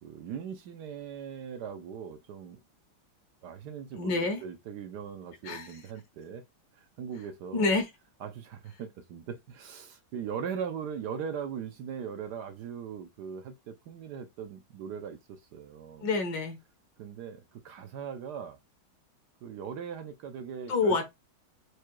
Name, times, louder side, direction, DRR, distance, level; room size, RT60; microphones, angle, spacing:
voice 1, 0.0-2.6 3.4-6.4 6.7-7.7 8.2-16.1 17.0-18.6 19.4-21.0, right 7 dB, 70° right, 1.1 m, -40 dB
voice 2, 4.0-4.4 5.4-5.8 7.5-7.9 16.0-16.6 20.7-21.1, left 3 dB, 65° left, 1.6 m, -27 dB
4.8 x 2.2 x 4.5 m
omnidirectional pair, 2.1 m